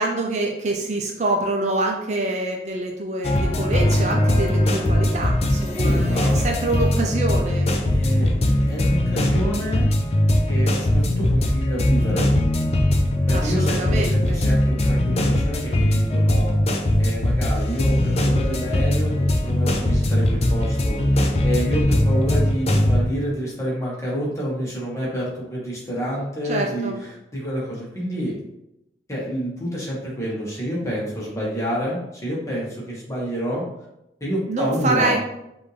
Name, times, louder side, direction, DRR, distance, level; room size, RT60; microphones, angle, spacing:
voice 1, 0.0-7.7 13.3-14.4 26.5-27.0 34.5-35.2, right 2 dB, 40° right, 1 dB, 0.5 m, -26 dB
sound 1, 3.2-23.0, left 1 dB, 35° left, 0.5 m, -20 dB
voice 2, 5.7-6.4 7.9-9.9 10.5-12.3 13.3-28.4 29.1-33.6 34.2-35.1, equal, 15° left, -5 dB, 1.3 m, -28 dB
5.3 x 2.6 x 3.3 m, 0.86 s
head